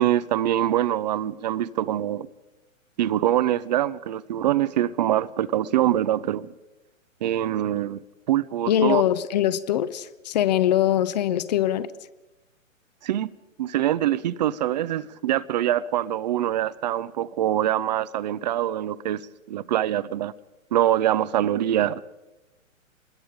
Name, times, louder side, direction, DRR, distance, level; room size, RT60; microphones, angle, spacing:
voice 1, 0.0-2.3 3.0-6.5 7.2-8.0 8.3-9.0 13.0-13.3 13.6-20.3 20.7-22.0, right 12 dB, 35° right, 0.6 m, -24 dB
voice 2, 8.7-11.9, left 11 dB, 30° left, 0.7 m, -22 dB
26.0 x 21.0 x 5.1 m
figure-of-eight pair, 125°, 40 cm